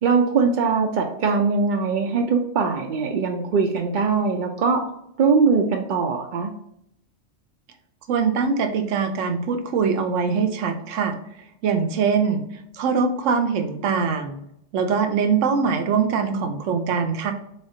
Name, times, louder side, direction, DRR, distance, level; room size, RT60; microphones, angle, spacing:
voice 1, 0.0-4.8 5.2-6.5, right 5 dB, 60° right, 2 dB, 0.5 m, -21 dB
voice 2, 8.1-11.1 11.6-12.4 12.8-14.4 14.7-17.3, right 5 dB, 80° right, 6 dB, 1.0 m, -22 dB
3.8 x 3.4 x 2.7 m, 0.75 s
omnidirectional pair, 1.3 m